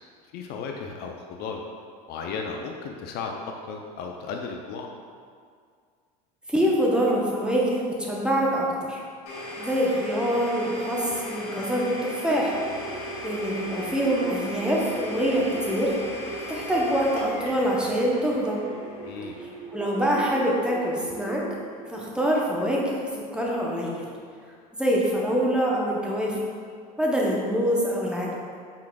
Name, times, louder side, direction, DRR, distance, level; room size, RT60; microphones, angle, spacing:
voice 1, 0.3-1.6 2.1-4.9 19.0-19.5, left 5 dB, 55° left, 2 dB, 0.4 m, -35 dB
voice 2, 6.5-9.0 9.6-12.6 13.2-16.0 16.5-18.6 19.4-21.4 21.9-24.0 24.8-26.4 27.0-28.4, equal, 5° right, -4 dB, 0.7 m, -25 dB
Domestic sounds home sounds, 9.3-20.9, equal, 90° left, 1.2 m, -37 dB
sound 1, 12.5-23.6, right 5 dB, 45° right, 0.4 m, -41 dB
4.7 x 3.7 x 2.2 m, 2.1 s
supercardioid pair, 100°, 20 cm